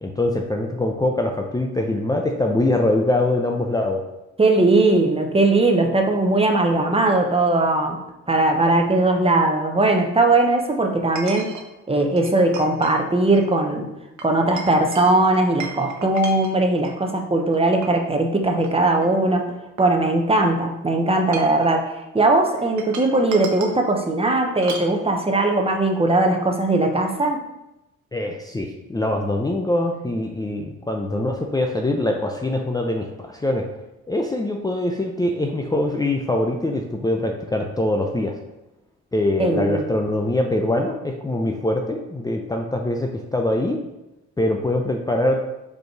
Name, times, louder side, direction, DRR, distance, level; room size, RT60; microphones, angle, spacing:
voice 1, 0.0-4.0 28.1-33.6 34.1-38.4 39.1-43.8 44.4-45.4, left 1 dB, 15° left, 2 dB, 0.6 m, -23 dB
voice 2, 4.4-8.0 8.3-11.5 11.9-13.9 14.2-19.5 19.8-27.4 39.4-39.9, right 2 dB, 20° right, 3 dB, 0.9 m, -19 dB
Chink clink, 7.7-7.8 11.2-11.7 12.2-13.0 13.3-13.5 14.2-17.0 17.5-18.1 18.6-18.7 19.0-20.4 21.1-21.7 22.6-23.8 24.6-24.9, right 4 dB, 65° right, 1.1 m, -36 dB
5.1 x 4.9 x 4.6 m, 0.94 s
cardioid pair, 90°, 30 cm